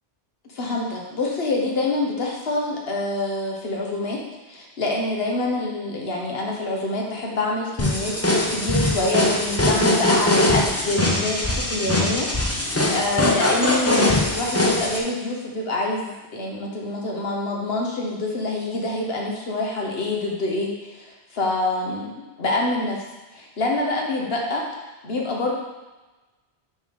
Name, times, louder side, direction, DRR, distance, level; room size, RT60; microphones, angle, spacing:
voice 1, 0.5-4.2 4.5-8.1 8.5-22.1 22.4-23.0 23.3-24.6 25.0-25.5, left 2 dB, 70° left, -1 dB, 1.4 m, -26 dB
sound 1, 7.8-15.0, left 1 dB, 15° left, 0.6 m, -21 dB
6.0 x 3.9 x 5.3 m, 1.2 s
omnidirectional pair, 1.1 m